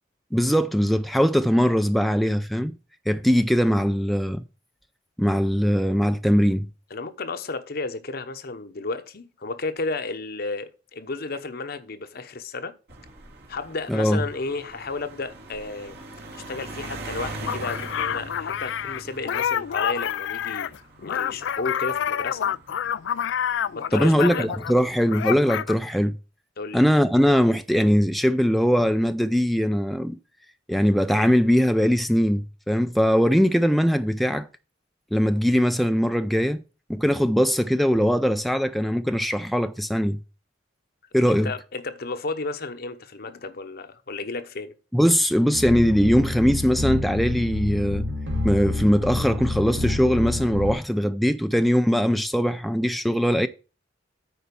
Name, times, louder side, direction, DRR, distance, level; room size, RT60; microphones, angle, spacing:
voice 1, 0.3-2.7 3.1-4.4 5.2-6.7 13.9-14.2 23.9-26.2 26.7-30.2 30.7-34.5 35.1-36.6 36.9-40.2 41.1-41.5 44.9-48.1 48.4-53.5, equal, ahead, 0.4 m, -21 dB
voice 2, 6.9-12.7 13.5-16.0 16.3-20.7 21.0-22.6 23.7-24.5 26.6-26.9 41.3-44.7, left 3 dB, 55° left, 0.9 m, -32 dB
sound 1, 12.9-23.6 24.4-24.8, right 2 dB, 65° right, 2.2 m, -41 dB
sound 2, 17.5-24.8 25.1-25.7, left 9 dB, 75° left, 0.3 m, -28 dB
sound 3, 45.5-50.7, left 2 dB, 85° right, 2.5 m, -28 dB
9.3 x 4.5 x 6.9 m
head